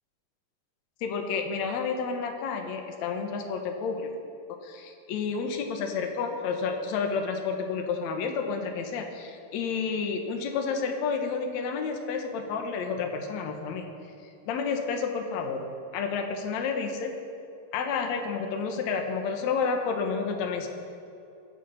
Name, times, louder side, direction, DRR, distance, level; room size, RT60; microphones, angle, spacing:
voice 1, 1.0-4.1 4.6-13.9 14.5-15.6 15.9-17.1 17.7-20.7, left 5 dB, 60° left, 3 dB, 2.2 m, -30 dB
24.0 x 8.5 x 5.7 m, 2.7 s
omnidirectional pair, 4.6 m